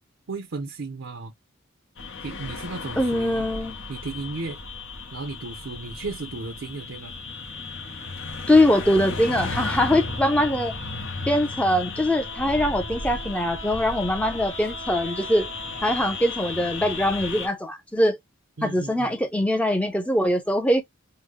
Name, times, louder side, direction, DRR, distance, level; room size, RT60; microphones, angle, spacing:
voice 1, 0.3-1.3 2.2-3.5 3.9-4.6 5.1-7.1 10.0-10.3 18.6-19.2, right 3 dB, 65° right, 0.6 m, -35 dB
sound 1, 2.0-17.5, left 3 dB, 70° left, 0.9 m, -34 dB
voice 2, 3.0-3.8 8.5-10.8 11.3-15.5 15.8-18.2 18.6-20.8, left 1 dB, 5° left, 0.6 m, -22 dB
Wind instrument woodwind instrument, 12.1-16.6, equal, 30° left, 1.2 m, -42 dB
3.8 x 2.1 x 3.1 m
head